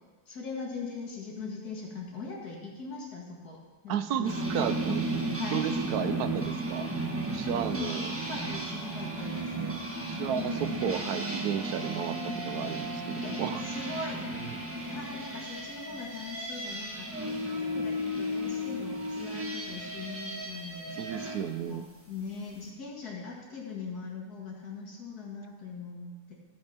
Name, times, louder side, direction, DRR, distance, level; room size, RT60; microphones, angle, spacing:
voice 1, 0.3-5.6 5.9-6.5 7.7-9.8 10.2-11.0 12.1-12.4 13.2-14.3 14.6-21.1 21.4-21.8 22.1-26.3, left 4 dB, 80° left, -2 dB, 2.5 m, -41 dB
voice 2, 3.9-5.1 5.5-6.9 7.3-8.1 10.1-12.2 12.5-13.6 14.3-14.4 21.0-21.9, right 9 dB, 85° right, 11 dB, 1.2 m, -33 dB
sound 1, 4.3-21.4, right 1 dB, 10° right, 1.2 m, -34 dB
14.0 x 5.3 x 5.8 m, 1.3 s
omnidirectional pair, 1.6 m